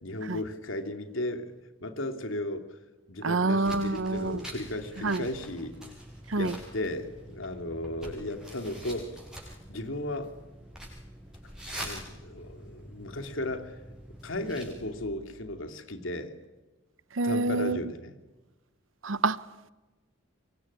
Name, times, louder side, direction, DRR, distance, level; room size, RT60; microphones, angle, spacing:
voice 1, 0.0-1.5 1.8-2.7 3.1-6.0 6.4-9.1 9.7-10.3 11.7-13.8 14.2-16.3 17.2-18.2, left 1 dB, 90° left, 2.8 m, -35 dB
voice 2, 3.2-4.4 5.0-5.3 6.3-6.5 17.1-17.8 19.0-19.4, right 3 dB, 85° right, 0.9 m, -27 dB
sound 1, 3.6-15.0, equal, 5° right, 7.2 m, -45 dB
25.5 x 24.0 x 9.9 m
head